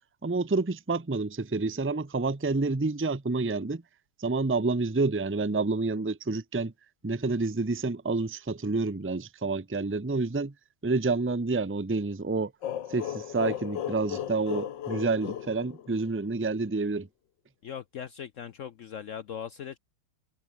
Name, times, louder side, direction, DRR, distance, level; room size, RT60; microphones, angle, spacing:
voice 1, 0.2-3.8 4.2-6.7 7.0-10.5 10.8-12.5 12.9-17.1, right 3 dB, 15° right, 0.4 m, -28 dB
sound 1, 12.6-16.3, left 10 dB, 65° left, 1.7 m, -35 dB
voice 2, 17.6-19.8, left 8 dB, 85° left, 0.6 m, -39 dB
omnidirectional pair, 2.2 m